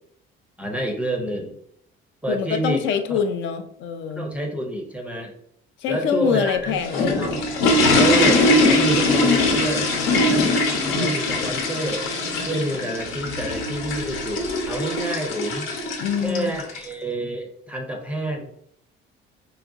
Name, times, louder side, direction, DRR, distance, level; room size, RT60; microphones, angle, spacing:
voice 1, 0.6-1.6 2.2-2.8 3.1-3.2 4.1-5.3 5.9-7.4 7.9-9.9 10.3-12.1 12.4-15.7 16.2-18.5, right 1 dB, 5° right, 2 dB, 0.5 m, -28 dB
voice 2, 2.3-4.3 5.8-7.3 9.9-10.5 16.0-16.5, left 7 dB, 60° left, 7 dB, 0.4 m, -25 dB
sound 1, 6.5-16.8, left 2 dB, 85° left, 0.9 m, -21 dB
4.8 x 2.9 x 2.5 m, 0.70 s
cardioid pair, 165°, 21 cm